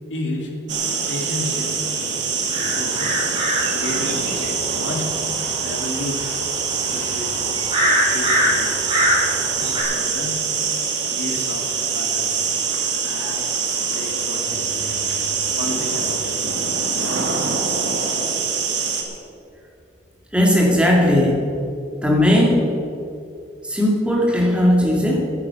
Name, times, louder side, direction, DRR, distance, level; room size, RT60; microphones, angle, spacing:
voice 1, 0.1-0.6 1.1-1.8 2.6-3.3 3.7-4.3 4.7-5.1 5.6-6.2 6.9-7.6 8.1-8.7 9.6-10.4 11.0-12.4 13.0-13.5 13.9-15.1 15.6-16.4, left 1 dB, 80° left, 1 dB, 2.7 m, -32 dB
sound 1, 0.7-19.0, right 5 dB, 75° right, 2.2 m, -24 dB
sound 2, 2.5-9.8, equal, 25° right, 4.1 m, -24 dB
voice 2, 20.3-21.4 22.0-22.7 23.6-25.2, left 1 dB, 5° right, -1 dB, 2.3 m, -17 dB
10.5 x 9.9 x 8.5 m, 2.5 s
head